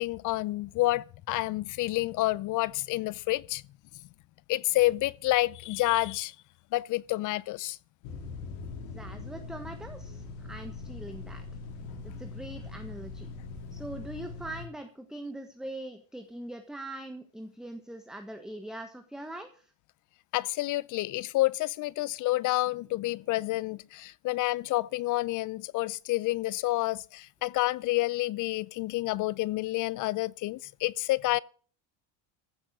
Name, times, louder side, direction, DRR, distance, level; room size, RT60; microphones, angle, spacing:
voice 1, 0.0-3.6 4.5-6.3 6.7-7.8 20.3-31.4, left 18 dB, 55° left, 0.7 m, -29 dB
sound 1, 8.0-14.7, left 3 dB, 75° left, 3.0 m, -41 dB
voice 2, 8.9-11.4 12.0-13.3 13.7-19.6, right 1 dB, ahead, 1.4 m, -42 dB
15.5 x 7.3 x 6.3 m
cardioid pair, 125°, 38 cm